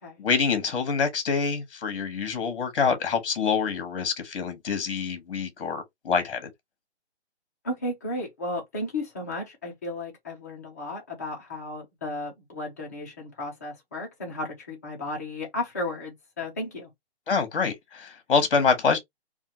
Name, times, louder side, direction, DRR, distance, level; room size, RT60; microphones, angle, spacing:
voice 1, 0.2-6.5 17.3-19.0, left 5 dB, 55° left, 1.0 m, -26 dB
voice 2, 7.6-16.9, left 2 dB, 15° left, 0.5 m, -34 dB
2.7 x 2.4 x 2.7 m
hypercardioid pair, 160°, 33 cm